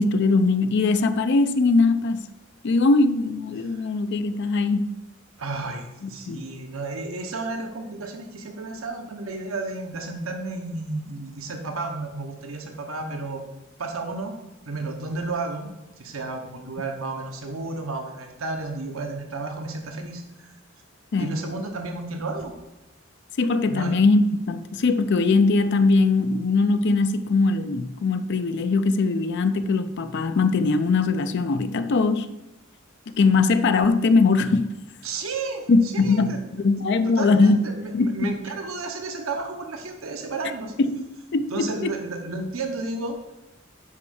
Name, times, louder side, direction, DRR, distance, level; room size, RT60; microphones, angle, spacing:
voice 1, 0.0-2.3 2.6-4.9 6.0-6.4 21.1-21.3 23.4-32.3 33.2-34.7 35.7-37.6 37.9-38.3 40.8-41.0 41.3-41.9, left 3 dB, 55° left, 0.4 m, -21 dB
voice 2, 5.4-13.4 13.8-14.3 14.7-20.5 21.2-22.5 23.7-23.9 35.0-36.7 37.1-40.7 41.5-43.2, right 3 dB, 85° right, 1.0 m, -32 dB
5.6 x 5.3 x 6.4 m
head